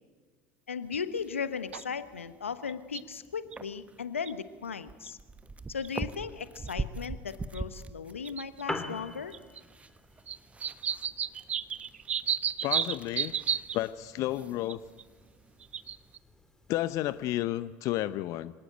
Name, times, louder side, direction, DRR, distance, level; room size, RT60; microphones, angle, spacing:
voice 1, 0.7-5.2 5.7-9.3, left 6 dB, 85° left, 12 dB, 1.2 m, -37 dB
sound 1, 0.8-16.2, right 3 dB, 20° right, 1.3 m, -45 dB
sound 2, 0.9-1.0 1.7-1.8 2.7-3.0 3.5-3.6 4.3-4.4 5.1-5.2 5.8-5.9 6.7-6.8 7.6-7.7 8.2-8.6 9.3-9.6 10.3-13.8 14.7-15.0 15.6-16.2 17.9-18.0, right 8 dB, 85° right, 0.6 m, -32 dB
Piano, 8.4-17.4, left 2 dB, 10° left, 3.4 m, -46 dB
voice 2, 12.6-13.4 13.7-14.8 16.7-18.5, left 15 dB, 55° left, 15 dB, 0.8 m, -31 dB
25.5 x 18.0 x 9.1 m, 1.4 s
figure-of-eight pair, 70°, 7 cm